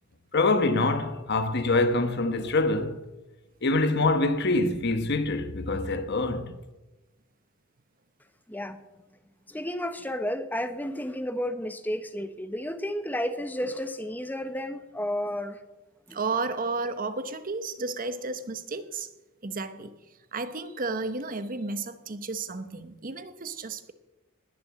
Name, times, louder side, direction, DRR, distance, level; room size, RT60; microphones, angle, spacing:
voice 1, 0.3-3.0 3.6-6.6, left 2 dB, 50° left, 1.1 m, -25 dB
voice 2, 9.5-15.6 16.1-16.2, left 1 dB, 10° left, 0.9 m, -32 dB
voice 3, 16.1-19.1 19.4-19.9 20.3-23.9, right 3 dB, 40° right, 0.9 m, -33 dB
20.0 x 6.9 x 7.5 m
head